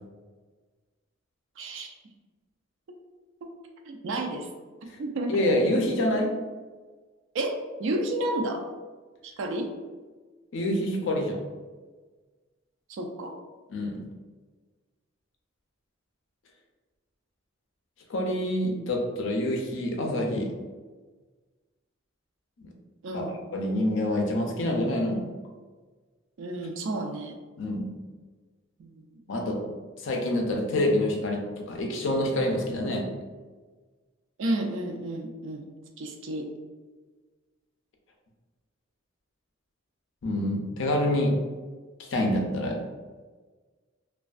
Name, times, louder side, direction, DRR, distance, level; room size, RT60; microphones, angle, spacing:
voice 1, 1.6-1.9 3.4-3.5 3.8-4.5 5.0-5.4 7.3-8.6 9.2-9.7 12.9-13.4 23.0-23.3 26.4-27.4 28.8-29.1 34.4-35.6 36.0-36.5, right 1 dB, 65° right, 3 dB, 0.4 m, -31 dB
voice 2, 5.3-6.3 10.5-11.4 13.7-14.0 18.1-20.5 22.6-22.7 23.1-25.2 27.6-27.9 29.3-29.6 30.0-33.1 40.2-41.3 42.1-42.8, left 1 dB, 65° left, 1 dB, 0.5 m, -26 dB
2.4 x 2.2 x 2.3 m, 1.4 s
head